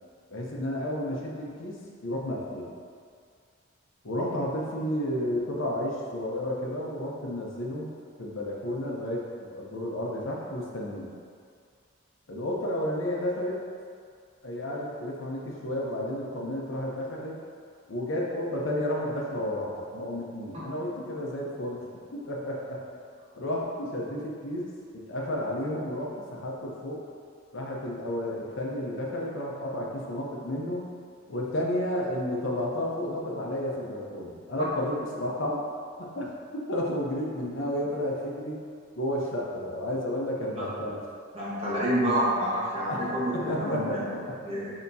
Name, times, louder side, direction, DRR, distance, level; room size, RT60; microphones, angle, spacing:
voice 1, 0.3-2.7 4.0-7.9 8.2-11.1 12.3-13.6 14.4-17.4 17.9-21.8 22.1-22.8 23.4-24.7 24.9-27.0 27.5-30.9 31.3-35.6 36.0-36.3 36.7-38.6 39.0-41.0 42.9-43.0 43.3-44.4, left 1 dB, 65° left, -2 dB, 0.7 m, -32 dB
voice 2, 41.3-44.0 44.4-44.7, equal, 30° right, -8 dB, 1.2 m, -28 dB
6.7 x 2.9 x 2.7 m, 2.2 s
head